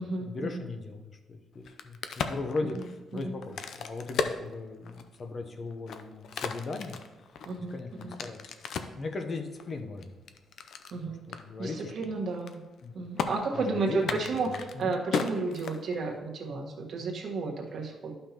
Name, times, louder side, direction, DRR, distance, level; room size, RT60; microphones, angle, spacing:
voice 1, 0.0-7.0 7.7-8.5 9.0-10.1 11.0-11.9 12.8-13.0 13.5-14.9 16.5-16.7, left 3 dB, 35° left, 5 dB, 0.8 m, -38 dB
Crack, 1.5-5.2 5.7-9.0 9.6-11.0 11.3-11.4 11.7-12.0 12.3-12.8 13.2-13.3 14.0-16.2, left 6 dB, 65° left, 0.5 m, -35 dB
voice 2, 7.4-8.2 10.9-11.3 11.6-12.6 12.9-16.6 16.9-18.1, right 3 dB, 55° right, 0 dB, 1.4 m, -32 dB
12.0 x 5.6 x 2.9 m, 1.1 s
cardioid pair, 135°, 0 cm